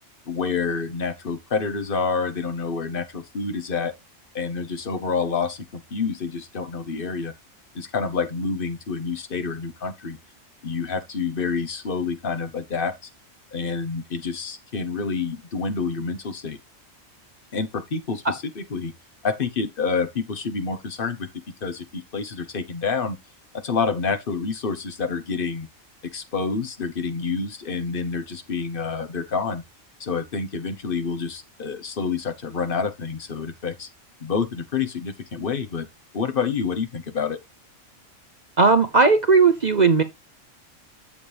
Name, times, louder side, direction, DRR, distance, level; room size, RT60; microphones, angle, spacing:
voice 1, 0.3-3.9 4.3-7.3 7.7-10.2 10.6-12.9 13.5-16.6 17.5-18.9 19.2-21.3 21.6-23.2 23.5-25.7 26.1-29.6 30.0-33.9 34.2-35.9 36.1-37.4, left 5 dB, 45° left, 1.2 m, -28 dB
voice 2, 38.6-40.0, right 4 dB, 40° right, 0.7 m, -16 dB
7.3 x 7.0 x 3.4 m
omnidirectional pair, 1.3 m